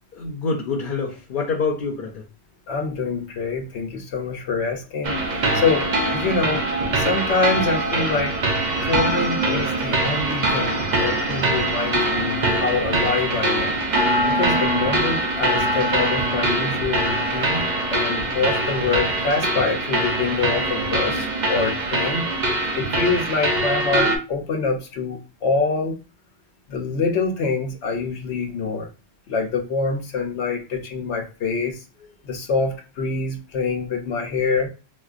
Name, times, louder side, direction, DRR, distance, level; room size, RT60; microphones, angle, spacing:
voice 1, 0.1-2.3 5.5-5.6, left 4 dB, 60° left, 0 dB, 0.7 m, -26 dB
voice 2, 2.7-5.2 5.5-6.6 6.9-8.4 8.8-13.8 14.3-17.6 17.9-22.3 22.7-26.0 26.7-28.9 29.3-31.8 32.2-34.7, left 4 dB, 90° left, 3 dB, 1.0 m, -25 dB
sound 1, 5.0-24.2, right 2 dB, 50° right, 0.7 m, -23 dB
4.3 x 2.2 x 2.4 m, 0.33 s
omnidirectional pair, 1.1 m